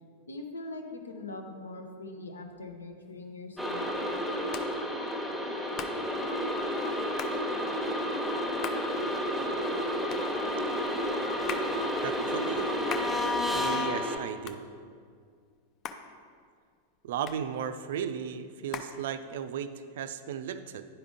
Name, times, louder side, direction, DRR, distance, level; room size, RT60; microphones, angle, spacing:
voice 1, 0.3-3.8, left 2 dB, 75° left, 4 dB, 0.8 m, -42 dB
Hands, 3.0-19.7, left 7 dB, 35° left, 0.5 m, -45 dB
sound 1, 3.6-14.2, left 1 dB, ahead, 1.0 m, -31 dB
voice 2, 12.0-12.7 13.5-14.6 17.0-20.9, right 8 dB, 55° right, 11 dB, 0.3 m, -35 dB
10.5 x 4.9 x 3.6 m, 2.1 s
figure-of-eight pair, 90°, 0 cm